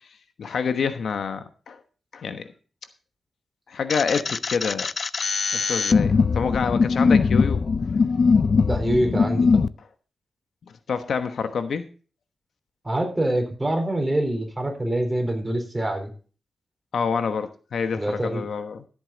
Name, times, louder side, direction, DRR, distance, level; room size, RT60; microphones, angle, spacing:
voice 1, 0.4-1.8 2.1-2.5 3.7-4.9 5.5-7.6 10.6-11.9 16.9-18.8, left 6 dB, 75° left, 9 dB, 1.1 m, -27 dB
sound 1, 3.9-9.7, left 5 dB, 55° left, 0.4 m, -21 dB
voice 2, 8.7-9.7 12.8-16.1 17.9-18.5, right 1 dB, 15° right, 3 dB, 4.0 m, -25 dB
14.0 x 8.6 x 4.0 m, 0.37 s
wide cardioid pair, 105°, 0 cm